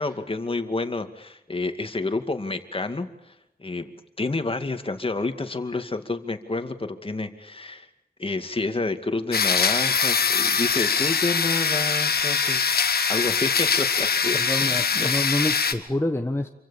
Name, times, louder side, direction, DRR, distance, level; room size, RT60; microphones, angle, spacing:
voice 1, 0.0-3.1 3.6-7.9 8.2-12.6 12.9-15.2, left 3 dB, 35° left, 7 dB, 2.3 m, -29 dB
sound 1, 9.3-15.7, left 5 dB, 90° left, 1.6 m, -23 dB
voice 2, 14.3-16.5, left 1 dB, 15° left, 4 dB, 1.3 m, -27 dB
27.0 x 25.0 x 7.3 m, 0.83 s
wide cardioid pair, 85°, 16 cm